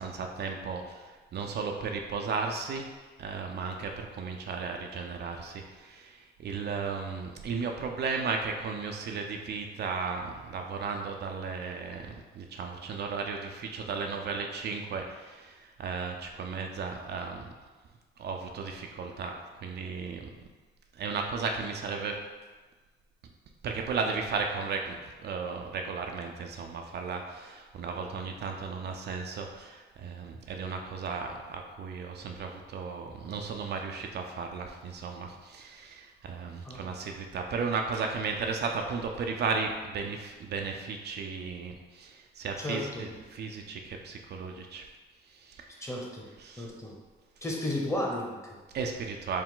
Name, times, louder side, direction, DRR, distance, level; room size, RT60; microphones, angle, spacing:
voice 1, 0.0-2.9 3.2-17.5 18.2-20.3 20.9-22.2 23.6-44.8 45.3-45.9 46.4-46.7 48.7-49.4, right 5 dB, 55° right, 3 dB, 0.5 m, -35 dB
voice 2, 42.6-43.1 45.8-46.2 46.6-46.9 47.4-48.6, left 1 dB, 15° left, -2 dB, 0.9 m, -33 dB
4.6 x 2.1 x 3.7 m, 1.3 s
cardioid pair, 90°, 20 cm